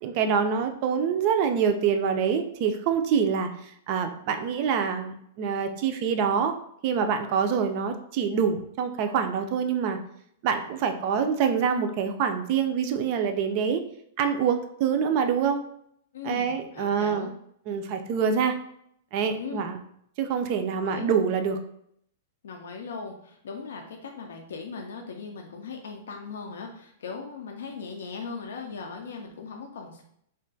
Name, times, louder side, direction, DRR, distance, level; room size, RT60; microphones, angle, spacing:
voice 1, 0.0-3.5 3.9-6.5 6.8-10.0 10.4-13.8 14.2-15.6 16.2-17.3 17.7-18.6 19.1-19.8 20.2-21.6, right 7 dB, 35° right, 7 dB, 0.3 m, -25 dB
voice 2, 16.1-17.3 19.4-19.7 20.7-21.0 22.4-30.0, left 5 dB, 85° left, 2 dB, 0.5 m, -38 dB
2.4 x 2.2 x 3.8 m, 0.70 s
supercardioid pair, 170°, 0 cm